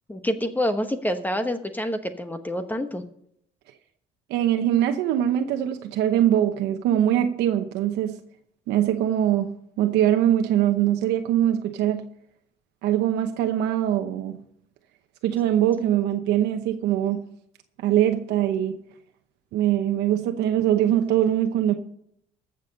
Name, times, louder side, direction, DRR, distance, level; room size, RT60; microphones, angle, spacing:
voice 1, 0.1-3.0, equal, 10° left, 1.1 m, -27 dB
voice 2, 4.3-8.2 8.7-12.0 12.8-14.4 15.2-17.2 17.8-18.8 19.5-21.7, right 11 dB, 85° right, 0.9 m, -22 dB
14.5 x 6.9 x 5.3 m
cardioid pair, 110°, 17 cm